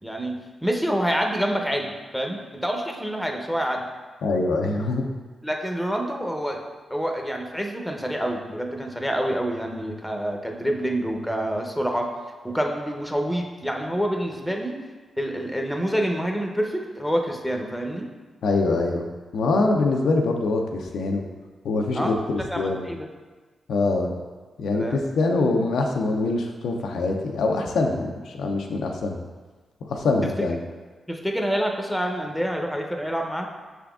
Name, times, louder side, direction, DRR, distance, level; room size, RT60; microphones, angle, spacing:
voice 1, 0.0-3.8 5.4-6.6 6.9-12.1 12.4-14.8 15.2-18.1 21.9-22.1 22.5-23.1 24.7-25.0 30.2-30.5 31.1-33.5, equal, ahead, 2 dB, 0.7 m, -27 dB
voice 2, 4.2-5.0 18.4-19.1 19.3-21.2 21.6-22.1 22.6-22.9 23.7-24.1 24.6-29.2 29.9-30.6, left 3 dB, 80° left, 2 dB, 0.4 m, -24 dB
5.8 x 3.5 x 2.4 m, 1.3 s
supercardioid pair, 45°, 0 cm